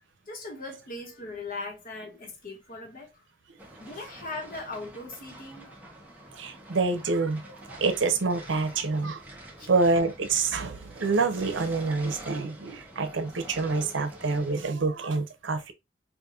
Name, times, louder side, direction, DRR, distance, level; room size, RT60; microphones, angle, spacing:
voice 1, 0.3-3.2 3.8-5.7 9.6-9.7, left 2 dB, 50° left, 1.4 m, -39 dB
sound 1, 3.6-14.6, right 1 dB, 10° right, 0.9 m, -47 dB
voice 2, 6.4-9.2 9.7-15.7, right 3 dB, 85° right, 0.7 m, -27 dB
5.1 x 2.6 x 2.4 m
head